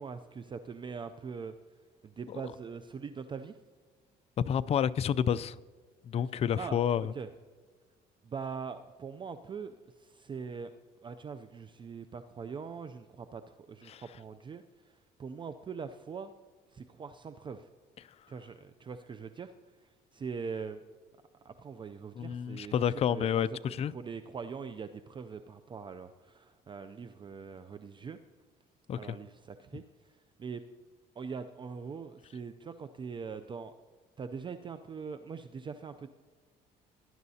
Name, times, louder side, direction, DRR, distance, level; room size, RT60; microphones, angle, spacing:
voice 1, 0.0-1.5 2.0-3.6 6.6-6.8 7.1-7.3 8.2-10.7 11.0-14.9 15.2-16.3 16.7-17.7 18.3-19.5 20.1-20.8 21.4-22.7 23.1-28.2 29.0-29.8 30.4-30.6 31.2-33.7 34.2-36.1, right 5 dB, 30° right, 0.4 m, -42 dB
voice 2, 4.4-5.6 6.0-7.1 13.9-14.0 22.2-23.9 28.9-29.2, left 8 dB, 40° left, 0.4 m, -30 dB
18.5 x 10.5 x 2.8 m
cardioid pair, 110°, 17 cm